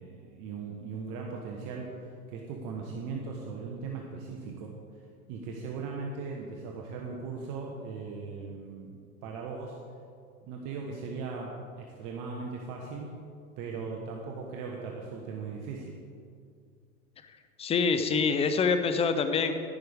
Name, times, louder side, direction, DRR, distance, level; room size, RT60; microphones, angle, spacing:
voice 1, 0.0-5.0 5.3-9.9 10.4-13.2 13.6-16.0, right 4 dB, 45° right, 0 dB, 1.3 m, -39 dB
voice 2, 17.6-19.5, left 5 dB, 15° left, 8 dB, 0.5 m, -25 dB
11.5 x 10.5 x 3.6 m, 2.3 s
hypercardioid pair, 115°, 44 cm